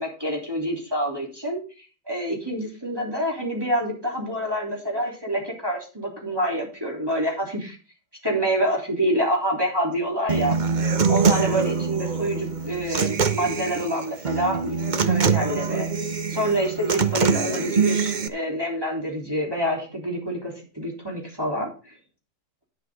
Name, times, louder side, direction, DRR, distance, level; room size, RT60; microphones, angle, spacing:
voice 1, 0.0-7.8 8.2-10.5 10.8-15.9 16.3-21.9, equal, 10° right, -1 dB, 3.5 m, -27 dB
Human voice / Acoustic guitar, 10.3-18.3, right 5 dB, 45° right, 0.6 m, -24 dB
11.0 x 10.0 x 3.7 m, 0.34 s
omnidirectional pair, 1.9 m